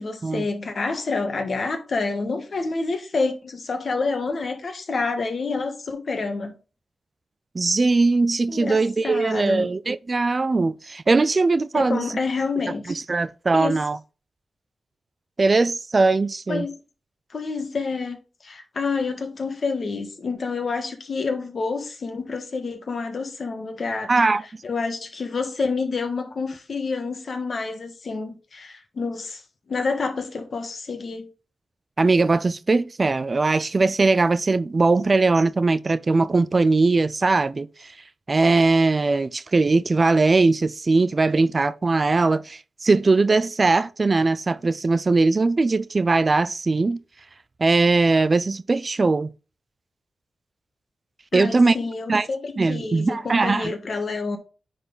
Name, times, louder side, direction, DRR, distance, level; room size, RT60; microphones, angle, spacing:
voice 1, 0.0-6.5 8.5-9.7 11.7-13.0 13.5-13.8 16.5-16.8 17.3-18.2 18.4-24.3 24.6-29.4 29.7-31.3 51.3-54.4, left 4 dB, 55° left, 1.5 m, -28 dB
voice 2, 7.5-12.1 12.9-14.0 15.4-16.7 24.1-24.4 32.0-37.9 38.3-47.0 47.6-49.3 51.3-51.8 52.1-52.3 52.6-53.7, right 3 dB, 35° right, 0.4 m, -20 dB
9.6 x 4.1 x 3.9 m
wide cardioid pair, 110°, 0 cm